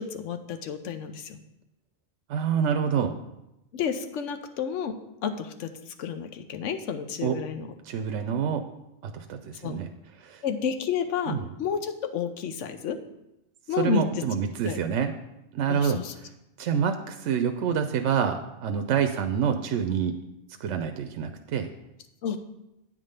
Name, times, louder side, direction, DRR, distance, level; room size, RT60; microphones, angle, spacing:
voice 1, 0.0-1.4 3.7-7.7 9.6-9.8 10.4-13.0 13.7-14.2 14.7-14.8 15.7-16.1 22.2-22.4, left 7 dB, 80° left, 8 dB, 1.1 m, -31 dB
voice 2, 2.3-3.1 7.2-7.4 7.9-8.6 9.0-9.9 10.2-10.4 11.3-11.4 13.8-15.1 15.5-16.0 16.6-20.2 20.6-21.7, right 7 dB, 80° right, 6 dB, 0.9 m, -27 dB
9.3 x 3.7 x 6.5 m, 0.90 s
omnidirectional pair, 1.2 m